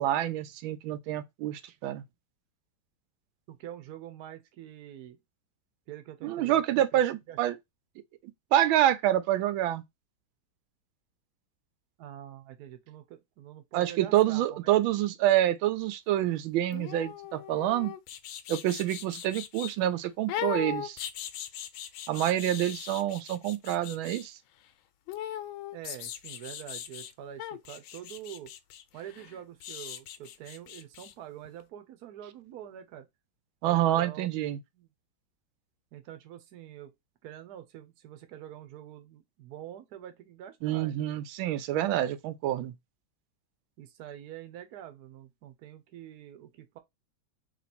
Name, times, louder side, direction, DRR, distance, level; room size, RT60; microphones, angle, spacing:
voice 1, 0.0-2.0 6.2-7.5 8.5-9.8 13.7-17.9 18.5-21.0 22.1-24.3 33.6-34.6 40.6-42.7, right 13 dB, 90° right, 1.4 m, -27 dB
voice 2, 3.5-5.2 5.9-7.0 7.3-7.4 12.0-14.7 25.7-28.5 28.9-33.1 33.7-34.3 34.7-34.9 35.9-36.9 37.2-40.9 42.0-42.1 43.8-46.8, right 11 dB, 60° right, 1.1 m, -45 dB
sound 1, 16.7-19.8 20.3-24.3 25.1-27.1 27.4-31.1 31.5-31.6, left 11 dB, 85° left, 1.4 m, -39 dB
3.3 x 3.1 x 4.1 m
omnidirectional pair, 2.1 m